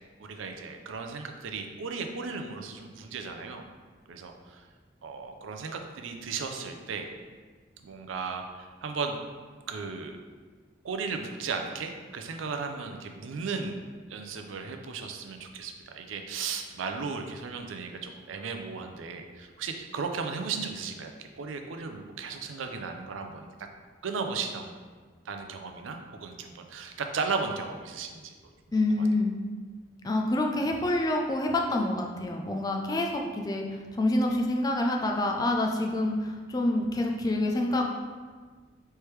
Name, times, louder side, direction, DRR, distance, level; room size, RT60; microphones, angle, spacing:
voice 1, 0.2-3.6 4.1-4.6 5.0-7.1 7.8-9.2 9.7-10.2 10.8-23.5 24.0-24.7 25.3-28.3 29.0-29.1, right 5 dB, 90° right, 5 dB, 0.5 m, -35 dB
voice 2, 28.7-29.3 30.0-37.8, left 1 dB, 20° left, 1 dB, 0.3 m, -27 dB
4.5 x 3.3 x 3.1 m, 1.5 s
head